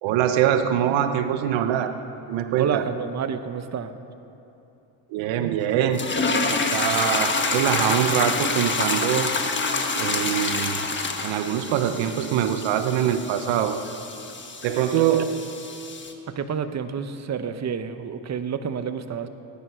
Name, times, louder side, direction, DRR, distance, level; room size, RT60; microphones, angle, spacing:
voice 1, 0.0-1.9 2.3-2.8 5.1-6.0 6.5-9.3 9.9-10.9 11.2-13.8 14.6-15.4, right 10 dB, 90° right, 9 dB, 1.0 m, -23 dB
voice 2, 2.6-3.9 14.9-15.0 16.3-19.3, right 7 dB, 35° right, 9 dB, 0.9 m, -29 dB
sound 1, 5.9-16.1, left 3 dB, 25° left, 1.4 m, -27 dB
19.5 x 9.9 x 5.7 m, 2.9 s
cardioid pair, 90°, 44 cm